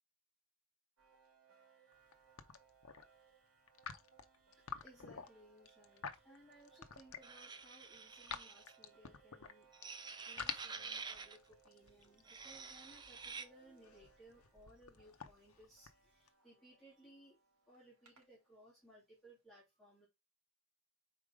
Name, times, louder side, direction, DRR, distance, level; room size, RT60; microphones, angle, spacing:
sound 1, 1.0-19.0, right 6 dB, 85° right, 2.1 m, -69 dB
sound 2, 1.9-2.1 2.4-3.0 3.7-7.4 7.8-9.8 10.2-16.3, left 7 dB, 75° left, 0.8 m, -49 dB
voice 1, 4.5-9.9 10.3-17.4 17.7-20.1, right 1 dB, ahead, 2.8 m, -63 dB
sound 3, 7.2-8.8 9.7-11.4 12.2-13.5, right 5 dB, 20° right, 0.5 m, -49 dB
5.0 x 4.5 x 4.8 m
head